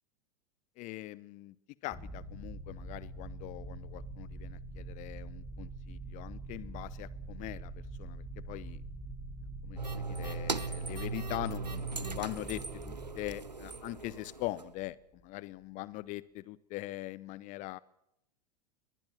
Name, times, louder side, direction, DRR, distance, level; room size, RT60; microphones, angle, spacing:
voice 1, 0.8-1.5 1.8-7.7 8.0-8.8 9.6-15.0 15.2-17.8, left 18 dB, 35° left, 21 dB, 0.9 m, -42 dB
sound 1, 1.9-14.9, right 2 dB, 5° right, 7.1 m, -44 dB
sound 2, 9.8-14.7, right 4 dB, 90° right, 0.8 m, -39 dB
22.0 x 19.5 x 7.4 m, 0.80 s
figure-of-eight pair, 90°, 20 cm